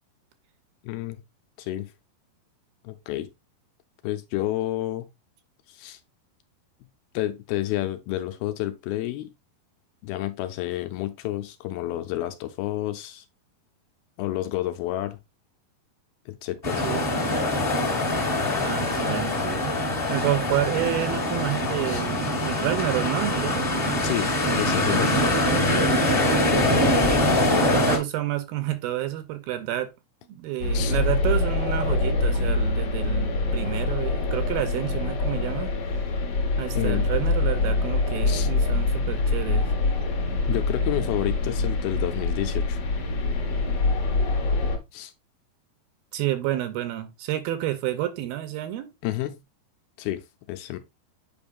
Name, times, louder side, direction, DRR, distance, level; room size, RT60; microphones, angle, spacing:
voice 1, 0.8-1.2 1.6-1.9 2.8-3.3 4.0-5.1 5.7-6.0 7.1-9.3 10.0-13.2 14.2-15.2 16.3-16.8 21.9-22.1 24.0-25.3 30.7-31.0 36.8-37.1 38.3-38.5 40.5-42.8 44.9-45.1 49.0-49.4 50.0-50.2 50.5-50.8, left 14 dB, 80° left, 2.3 m, -30 dB
sound 1, 16.6-28.0, left 1 dB, 25° left, 1.2 m, -23 dB
voice 2, 18.6-19.7 20.1-23.7 27.0-29.9 30.3-35.7 36.6-39.7 46.1-48.9, right 13 dB, 80° right, 2.3 m, -29 dB
sound 2, 30.6-44.8, left 3 dB, 55° left, 1.9 m, -25 dB
8.6 x 5.2 x 2.4 m
omnidirectional pair, 4.5 m